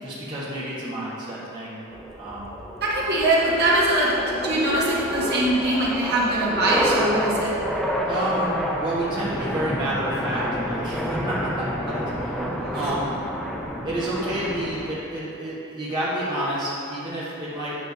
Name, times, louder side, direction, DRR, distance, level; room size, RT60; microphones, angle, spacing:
voice 1, 0.0-1.8 2.2-2.5 8.0-13.1 13.8-17.8, right 1 dB, 20° right, -10 dB, 1.2 m, -29 dB
sound 1, 1.9-14.9, equal, ahead, 0.6 m, -29 dB
voice 2, 2.8-7.5 12.7-12.8, right 1 dB, 45° right, -6 dB, 1.5 m, -22 dB
9.3 x 3.3 x 6.4 m, 2.6 s
head